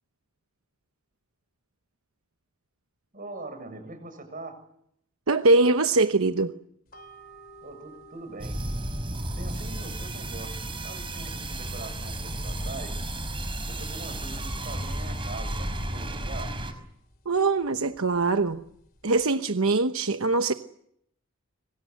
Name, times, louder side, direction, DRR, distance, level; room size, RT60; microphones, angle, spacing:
voice 1, 3.1-4.6 7.6-8.9 9.4-13.1 13.7-16.6, right 2 dB, 40° right, 6.8 m, -42 dB
voice 2, 5.3-6.5 17.3-18.6 19.0-20.5, right 3 dB, 80° right, 1.0 m, -22 dB
sound 1, 6.9-19.3, right 2 dB, 45° left, 3.1 m, -56 dB
sound 2, 8.4-16.7, right 1 dB, 25° right, 5.3 m, -33 dB
26.5 x 23.5 x 8.0 m
head